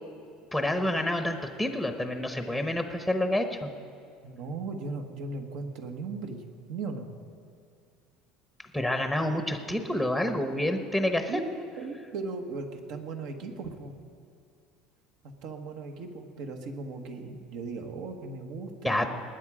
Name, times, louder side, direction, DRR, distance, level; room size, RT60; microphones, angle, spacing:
voice 1, 0.5-3.7 8.7-11.4 18.8-19.1, left 1 dB, 5° right, 6 dB, 0.9 m, -28 dB
voice 2, 4.2-6.4 6.7-7.1 11.3-13.9 15.4-19.1, right 3 dB, 65° right, 5 dB, 1.5 m, -37 dB
20.0 x 8.9 x 5.0 m, 2.4 s
supercardioid pair, 130°, 0 cm